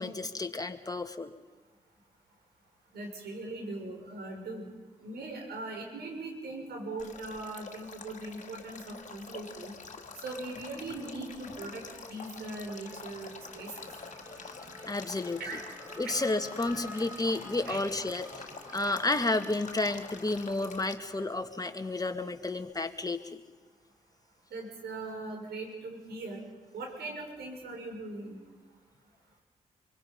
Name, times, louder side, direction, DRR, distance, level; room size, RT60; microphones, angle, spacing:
voice 1, 0.0-1.3 14.4-14.5 14.8-15.4 16.0-23.4, left 2 dB, 20° left, 7 dB, 2.1 m, -31 dB
voice 2, 2.9-4.7 5.0-9.7 10.2-11.8 12.1-13.9 15.4-15.6 16.1-16.2 17.7-17.8 24.5-26.5 26.7-28.4, right 2 dB, 75° right, 1 dB, 6.0 m, -40 dB
Male speech man speaking / Stream / Trickle dribble, 7.0-20.9, left 4 dB, 45° left, 2.2 m, -47 dB
Race car auto racing / Accelerating revving vroom, 7.8-8.7 9.0-22.7, equal, 15° right, 2.8 m, -51 dB
25.0 x 24.0 x 5.4 m, 1.4 s
supercardioid pair, 45°, 17 cm